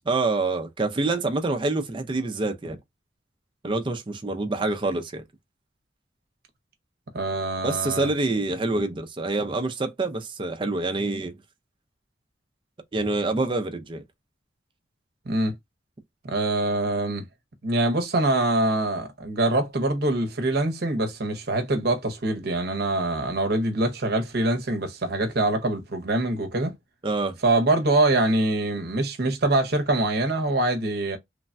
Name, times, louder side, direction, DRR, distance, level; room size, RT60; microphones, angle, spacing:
voice 1, 0.1-2.8 3.6-5.2 7.6-11.4 12.9-14.0 27.0-27.3, right 2 dB, 25° right, 0.4 m, -26 dB
voice 2, 7.1-8.1 15.3-15.5 16.2-17.2 17.6-26.7 27.4-31.2, right 2 dB, 55° right, 0.7 m, -24 dB
3.2 x 2.1 x 2.4 m
head